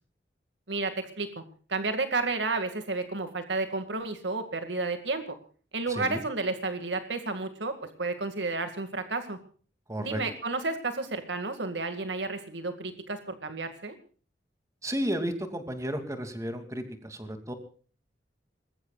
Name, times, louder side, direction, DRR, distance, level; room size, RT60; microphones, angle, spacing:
voice 1, 0.7-1.4 1.7-5.2 5.7-9.4 10.0-14.0, right 3 dB, 90° right, 8 dB, 2.2 m, -31 dB
voice 2, 5.9-6.2 9.9-10.2 14.8-17.5, equal, 20° right, 7 dB, 2.6 m, -33 dB
26.0 x 21.5 x 2.4 m, 0.41 s
head